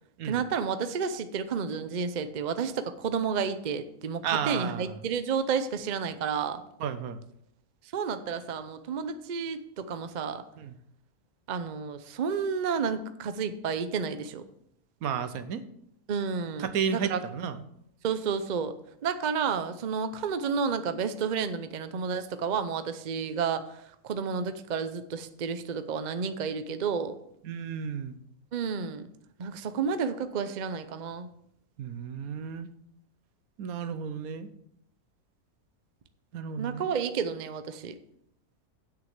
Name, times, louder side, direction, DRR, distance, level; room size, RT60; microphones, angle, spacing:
voice 1, 0.3-6.6 7.9-10.4 11.5-14.4 16.1-17.2 18.0-18.8 19.0-27.2 28.5-29.1 29.4-31.3 36.6-38.0, right 6 dB, 45° right, 10 dB, 0.6 m, -31 dB
voice 2, 4.2-4.9 6.8-7.2 10.6-10.7 15.0-15.6 16.6-17.6 27.4-28.2 31.8-32.7 33.6-34.5 36.3-36.9, right 7 dB, 75° right, 12 dB, 1.2 m, -32 dB
8.4 x 6.4 x 6.5 m, 0.74 s
omnidirectional pair, 1.6 m